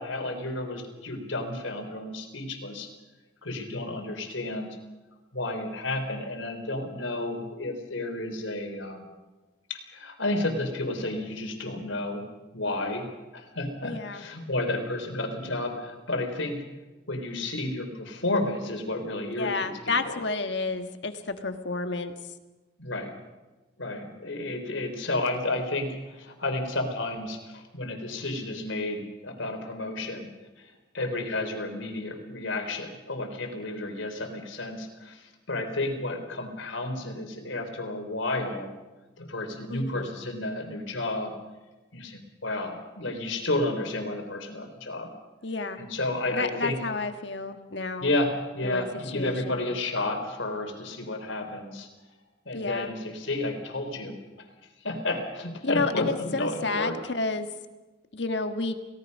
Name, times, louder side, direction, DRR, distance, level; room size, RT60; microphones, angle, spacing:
voice 1, 0.0-2.9 3.4-4.8 5.3-9.1 9.7-12.3 12.5-16.6 17.1-20.2 22.8-23.2 23.8-30.3 30.6-38.7 39.2-41.4 41.9-45.1 45.8-46.8 48.0-51.9 52.5-54.2 54.8-57.0, left 2 dB, 80° left, 5 dB, 3.8 m, -31 dB
voice 2, 13.8-14.2 19.4-22.1 39.7-40.1 45.4-45.8 46.3-48.1 48.6-48.9 49.1-49.6 52.5-52.9 55.6-57.5 58.1-58.8, left 3 dB, 65° left, 7 dB, 1.6 m, -30 dB
29.5 x 18.0 x 5.4 m, 1.2 s
head